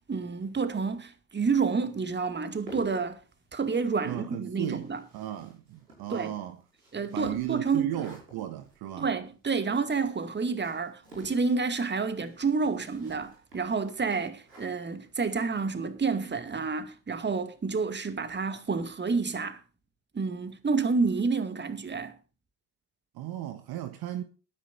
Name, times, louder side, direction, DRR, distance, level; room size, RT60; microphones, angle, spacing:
voice 1, 0.1-3.2 3.5-5.0 6.1-6.3 6.9-8.1 9.0-19.6 20.1-22.1, right 4 dB, 20° right, 2.2 m, -29 dB
sound 1, 2.5-15.9, right 2 dB, 85° right, 5.7 m, -53 dB
voice 2, 4.0-6.6 7.1-9.1 23.1-24.2, right 12 dB, 50° right, 1.3 m, -35 dB
21.0 x 10.0 x 2.6 m
figure-of-eight pair, 55°, 48 cm